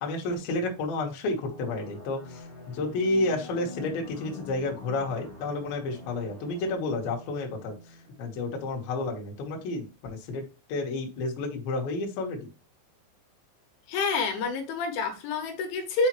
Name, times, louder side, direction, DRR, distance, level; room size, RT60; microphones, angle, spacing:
voice 1, 0.0-2.2 2.8-7.7 8.2-10.4 10.7-12.4, left 2 dB, 65° left, 2.7 m, -30 dB
sound 1, 1.4-8.8, left 3 dB, 45° left, 1.8 m, -46 dB
voice 2, 13.9-16.1, left 3 dB, 80° left, 3.4 m, -28 dB
7.2 x 5.0 x 3.0 m
omnidirectional pair, 5.6 m